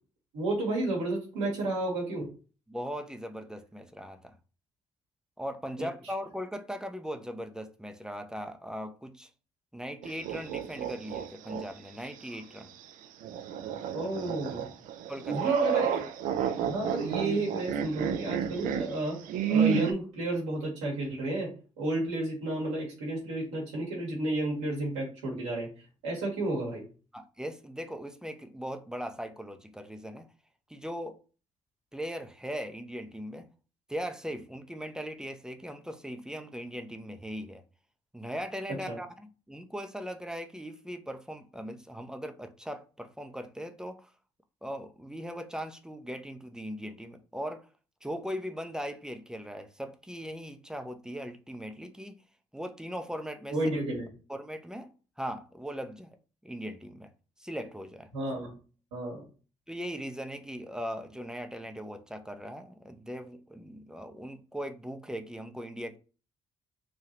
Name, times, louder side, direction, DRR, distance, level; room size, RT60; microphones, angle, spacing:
voice 1, 0.3-2.3 5.8-5.9 13.9-14.7 15.3-16.1 16.7-19.2 19.5-21.5 21.8-25.7 26.0-26.8 38.9-39.0 53.5-54.1 58.1-58.5 58.9-59.2, right 2 dB, 80° right, 1.1 m, -31 dB
voice 2, 2.7-4.3 5.4-9.3 9.7-12.7 15.1-15.6 27.1-30.3 30.7-31.2 31.9-33.5 33.9-37.6 38.1-44.1 44.6-47.7 48.0-52.2 52.5-53.6 54.3-54.9 55.2-56.2 56.4-57.1 57.4-58.1 59.7-66.0, equal, 5° right, 0.5 m, -39 dB
sound 1, 10.0-11.6 12.1-12.2 13.2-19.9, right 8 dB, 60° right, 0.4 m, -30 dB
3.2 x 2.2 x 2.9 m
hypercardioid pair, 45°, 15 cm